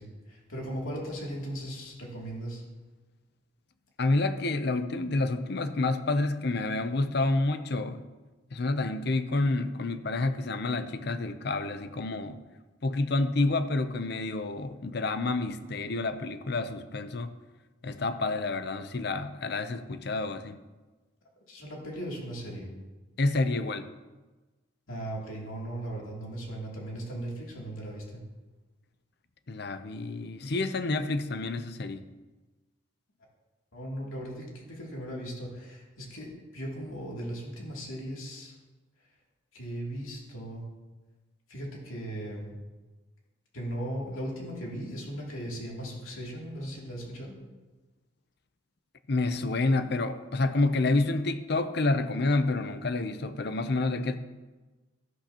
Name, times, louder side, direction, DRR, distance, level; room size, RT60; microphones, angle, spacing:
voice 1, 0.0-2.6 21.5-22.7 24.9-28.2 33.7-38.5 39.5-40.6 41.5-42.6 43.5-47.4, right 1 dB, 85° left, -3 dB, 2.8 m, -38 dB
voice 2, 4.0-8.0 8.5-12.4 12.8-17.3 17.8-20.6 23.2-23.9 29.5-32.0 49.1-54.2, left 2 dB, 50° left, 10 dB, 0.6 m, -28 dB
13.0 x 11.5 x 2.9 m, 1.2 s
head